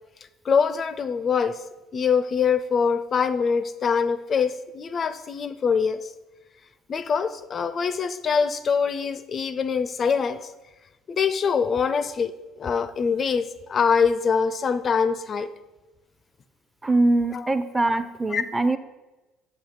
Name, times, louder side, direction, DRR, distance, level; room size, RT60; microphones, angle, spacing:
voice 1, 0.4-1.6 1.9-6.0 6.9-10.5 11.1-15.5 17.3-17.5 18.3-18.4, left 6 dB, 45° left, 12 dB, 0.4 m, -24 dB
voice 2, 16.8-18.8, right 2 dB, 20° right, 11 dB, 0.5 m, -22 dB
7.2 x 2.7 x 5.7 m, 1.1 s
supercardioid pair, 80°, 0 cm